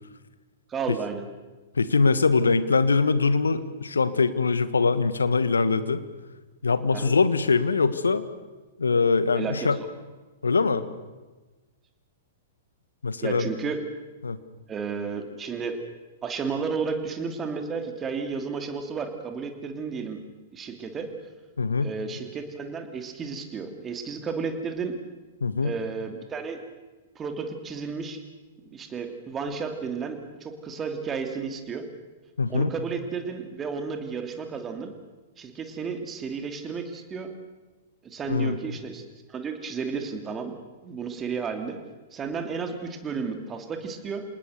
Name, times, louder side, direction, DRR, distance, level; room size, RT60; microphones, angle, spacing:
voice 1, 0.7-1.2 6.9-7.1 9.3-9.7 13.2-13.8 14.7-15.8 16.2-20.2 20.5-21.1 21.8-24.9 25.6-26.6 27.1-28.2 28.7-31.8 32.5-34.9 35.4-37.3 38.0-40.6 40.8-41.8 42.1-44.2, right 5 dB, 20° right, 5 dB, 2.9 m, -32 dB
voice 2, 1.7-6.0 6.6-8.2 8.8-9.8 10.4-10.8 13.0-13.4 14.2-14.4 21.6-21.9 25.4-25.7 32.4-32.7 38.3-38.6, left 4 dB, 75° left, 14 dB, 1.4 m, -22 dB
27.5 x 19.0 x 6.7 m, 1.2 s
figure-of-eight pair, 105°, 0 cm